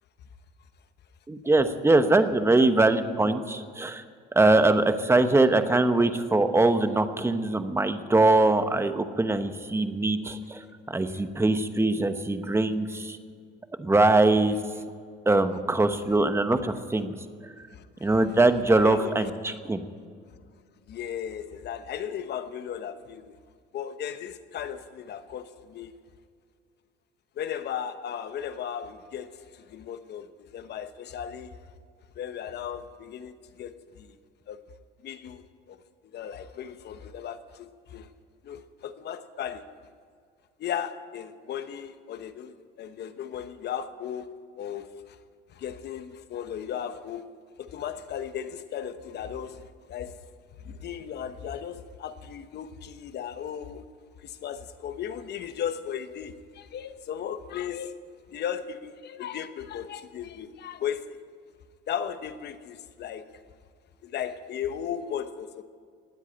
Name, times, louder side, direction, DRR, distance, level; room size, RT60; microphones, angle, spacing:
voice 1, 1.3-4.0 4.3-13.2 13.8-14.6 15.3-17.1 18.0-19.8, right 2 dB, 10° right, 1.0 m, -22 dB
voice 2, 17.7-18.4 18.7-19.3 20.9-23.4 23.7-25.9 27.4-31.6 32.1-34.1 34.5-34.6 35.0-38.1 38.4-39.8 40.6-45.2 45.5-47.3 47.6-50.2 50.6-53.9 54.2-58.0 58.3-61.2 61.9-63.3 64.0-65.6, left 9 dB, 50° left, 1.1 m, -36 dB
19.5 x 8.2 x 8.9 m
cardioid pair, 125°, 21 cm